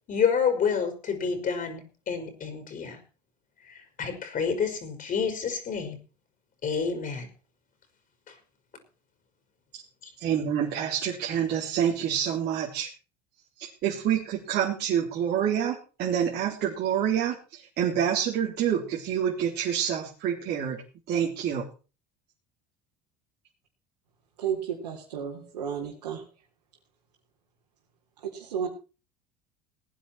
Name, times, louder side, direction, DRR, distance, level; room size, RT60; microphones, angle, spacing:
voice 1, 0.1-3.0 3.7-6.0 6.6-7.3, left 6 dB, 45° left, 6 dB, 5.3 m, -28 dB
voice 2, 10.2-12.9 13.6-20.8 21.1-21.7, right 9 dB, 55° right, -3 dB, 3.8 m, -27 dB
voice 3, 24.4-26.2 28.2-28.7, right 8 dB, 85° right, -3 dB, 3.8 m, -32 dB
19.5 x 10.0 x 4.5 m, 0.34 s
hypercardioid pair, 75°, 20 cm